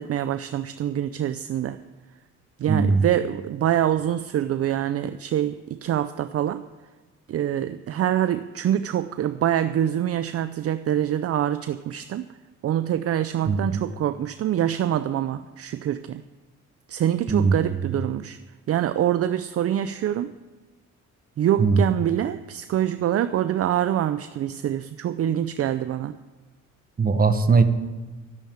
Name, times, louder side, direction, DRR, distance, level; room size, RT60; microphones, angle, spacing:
voice 1, 0.0-1.8 2.6-6.6 7.3-12.3 12.6-16.2 16.9-18.4 18.7-20.3 21.4-26.2, right 11 dB, 50° right, 12 dB, 0.5 m, -25 dB
voice 2, 2.7-3.1 13.4-13.9 17.3-17.7 21.6-21.8 27.0-27.6, right 4 dB, 30° right, 9 dB, 1.2 m, -20 dB
13.0 x 7.0 x 8.9 m, 1.3 s
cardioid pair, 90°, 30 cm